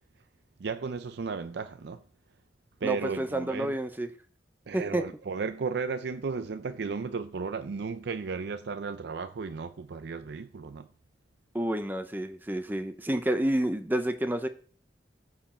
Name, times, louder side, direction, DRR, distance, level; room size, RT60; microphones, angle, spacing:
voice 1, 0.6-2.0 2.8-3.7 4.7-10.9, right 5 dB, 65° right, 0.5 m, -34 dB
voice 2, 2.8-4.1 4.7-5.0 11.5-14.5, right 1 dB, 10° right, 0.6 m, -29 dB
14.5 x 4.8 x 4.3 m
head